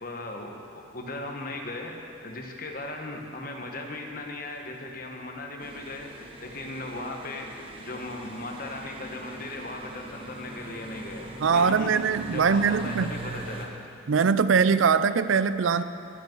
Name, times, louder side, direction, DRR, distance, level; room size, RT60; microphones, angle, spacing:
voice 1, 0.0-0.6 0.9-11.3 11.5-12.0 12.3-13.7, left 2 dB, 45° left, 1 dB, 1.4 m, -37 dB
sound 1, 5.6-13.7, right 1 dB, 25° right, 1.2 m, -42 dB
voice 2, 11.4-13.1 14.1-15.8, right 5 dB, 75° right, 14 dB, 0.5 m, -22 dB
23.5 x 8.1 x 4.6 m, 2.5 s
head